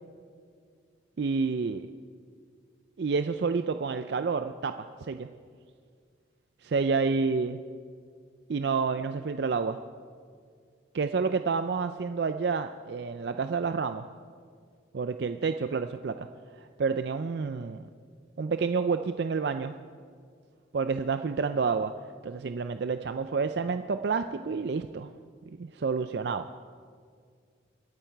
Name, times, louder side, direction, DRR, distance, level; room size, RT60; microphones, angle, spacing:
voice 1, 1.2-1.9 3.0-5.3 6.6-7.6 8.5-9.8 10.9-14.1 14.9-16.3 16.6-17.9 18.4-19.7 20.7-21.9 22.2-25.1 25.5-26.5, right 5 dB, 65° right, 9 dB, 0.4 m, -29 dB
24.5 x 8.6 x 4.6 m, 2.1 s
head